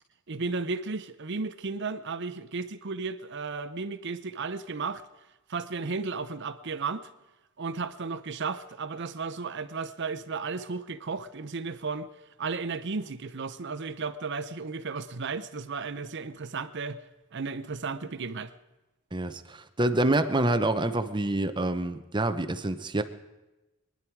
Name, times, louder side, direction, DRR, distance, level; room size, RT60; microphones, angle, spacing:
voice 1, 0.3-5.0 5.5-7.1 7.6-12.1 12.4-17.0 17.3-18.5, right 4 dB, 55° right, 13 dB, 0.8 m, -34 dB
voice 2, 19.1-23.0, right 2 dB, 20° right, 9 dB, 0.8 m, -27 dB
24.5 x 10.5 x 4.7 m, 1.1 s
head